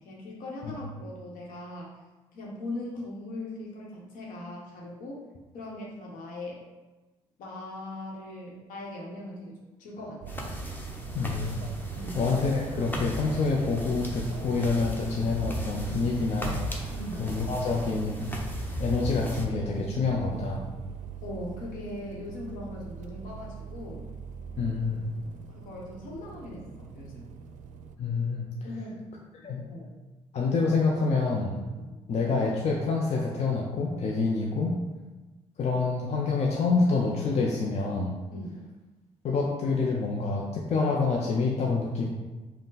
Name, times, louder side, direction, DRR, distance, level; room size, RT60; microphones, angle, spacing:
voice 1, 0.0-1.9 2.3-5.2 5.5-6.6 7.4-10.4 11.9-12.2 16.9-17.3 21.2-24.0 25.2-27.3 28.6-29.1 29.7-30.0 31.7-31.9 38.3-38.6, left 1 dB, 70° left, -3 dB, 1.2 m, -40 dB
sound 1, 10.2-28.0, right 9 dB, 60° right, 0.4 m, -42 dB
sound 2, 10.3-19.5, left 1 dB, 15° left, 0.9 m, -36 dB
voice 2, 11.1-11.6 12.1-16.9 17.2-18.3 18.8-20.6 24.6-25.1 28.0-28.5 29.4-29.6 30.3-31.6 32.1-34.8 35.6-38.1 39.2-42.1, left 4 dB, 50° left, -2 dB, 0.7 m, -27 dB
5.2 x 2.3 x 4.0 m, 1.2 s
hypercardioid pair, 45°, 14 cm